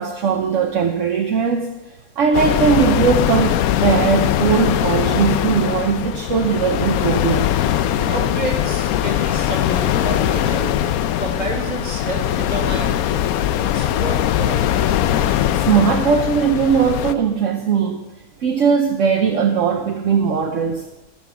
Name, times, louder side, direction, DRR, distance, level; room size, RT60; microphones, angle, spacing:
voice 1, 0.0-1.8 2.2-7.5 15.5-18.0 18.4-20.9, right 6 dB, 65° right, 4 dB, 1.1 m, -19 dB
sound 1, 2.3-17.1, left 11 dB, 85° left, 1.1 m, -20 dB
voice 2, 7.9-10.8 11.2-14.6, right 2 dB, 30° right, 2 dB, 1.9 m, -29 dB
14.0 x 6.0 x 7.0 m, 1.0 s
omnidirectional pair, 1.5 m